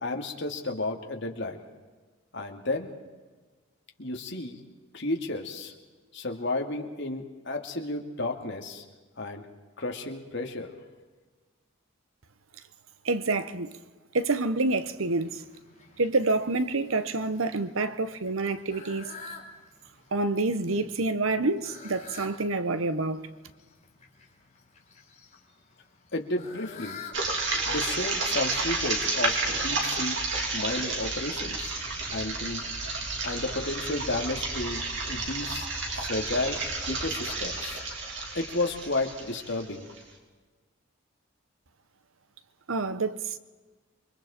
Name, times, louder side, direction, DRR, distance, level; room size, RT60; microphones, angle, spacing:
voice 1, 0.0-1.6 2.3-2.9 4.0-4.6 4.9-5.7 6.1-8.8 9.2-9.4 9.8-10.8 26.1-27.0 27.7-30.2 30.5-31.7 32.1-32.6 33.2-35.7 35.9-36.6 36.9-37.8 38.3-39.9, left 2 dB, 55° left, 2.5 m, -32 dB
voice 2, 13.0-13.8 14.1-15.4 16.0-19.1 20.1-23.2 42.7-43.4, right 3 dB, 75° right, 1.1 m, -27 dB
Fowl, 14.7-30.0, left 4 dB, 35° left, 3.6 m, -50 dB
sound 1, 27.1-40.0, right 3 dB, 60° right, 3.8 m, -31 dB
28.5 x 24.0 x 4.4 m
head